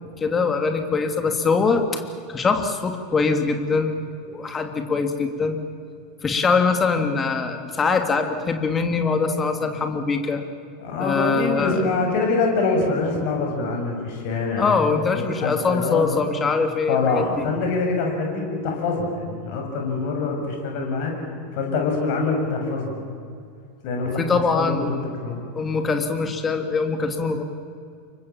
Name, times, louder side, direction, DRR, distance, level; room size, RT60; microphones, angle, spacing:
voice 1, 0.2-2.0 2.3-4.0 4.3-5.6 6.2-10.4 11.0-11.9 14.6-17.4 24.2-25.0 25.5-27.4, left 4 dB, 20° left, 6 dB, 3.0 m, -23 dB
voice 2, 10.8-14.6 15.1-16.2 16.9-21.1 21.5-23.0 23.8-24.9 25.2-25.4, left 3 dB, 50° left, 1 dB, 7.1 m, -25 dB
29.0 x 24.0 x 7.3 m, 2.4 s
figure-of-eight pair, 85°, 0 cm